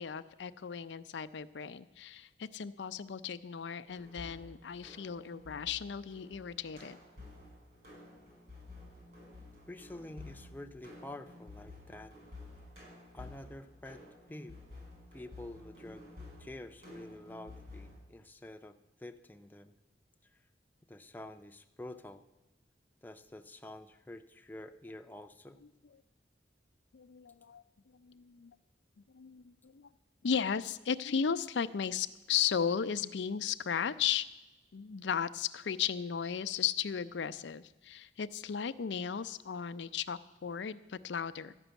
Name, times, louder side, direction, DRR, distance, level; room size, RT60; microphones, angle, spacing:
voice 1, 0.0-7.0 26.9-27.6 27.9-28.5 29.1-29.9 30.2-34.3 34.7-41.5, left 7 dB, 80° left, 13 dB, 0.5 m, -35 dB
sound 1, 3.9-18.0, left 2 dB, 55° right, 5.8 m, -52 dB
voice 2, 9.7-12.2 13.1-14.0 14.3-14.6 15.1-16.1 16.4-19.7 20.3-20.4 20.9-22.2 23.0-25.6, left 1 dB, 10° left, 7 dB, 0.5 m, -48 dB
12.5 x 6.1 x 9.0 m, 1.0 s
head